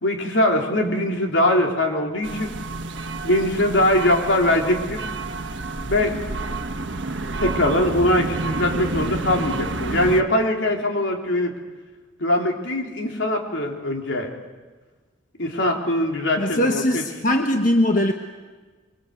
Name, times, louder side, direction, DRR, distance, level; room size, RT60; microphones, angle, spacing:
voice 1, 0.0-2.5 3.2-5.1 5.9-6.2 7.4-11.5 12.2-14.3 15.4-17.0, left 1 dB, 80° left, 1 dB, 3.6 m, -22 dB
sound 1, 2.2-10.2, right 2 dB, 75° right, 1.3 m, -29 dB
voice 2, 16.4-18.1, left 1 dB, 45° left, 4 dB, 1.4 m, -20 dB
25.0 x 25.0 x 8.2 m, 1.3 s
head